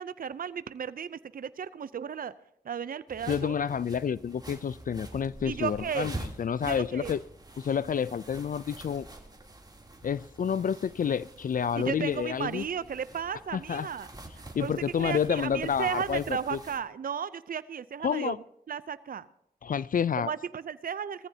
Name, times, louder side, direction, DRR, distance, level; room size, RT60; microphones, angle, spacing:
voice 1, 0.0-2.3 2.6-3.6 5.4-6.1 6.6-7.1 11.8-14.1 14.4-18.3 18.7-19.3 20.2-21.3, right 7 dB, 60° right, 15 dB, 0.6 m, -34 dB
sound 1, 3.1-16.8, right 2 dB, 25° right, 3.1 m, -46 dB
voice 2, 3.3-7.2 7.6-9.1 10.0-12.6 13.5-13.9 14.5-16.6 18.0-18.4 19.6-20.3, left 7 dB, 60° left, 19 dB, 0.4 m, -29 dB
20.0 x 14.5 x 2.8 m, 0.79 s
cardioid pair, 40°, 16 cm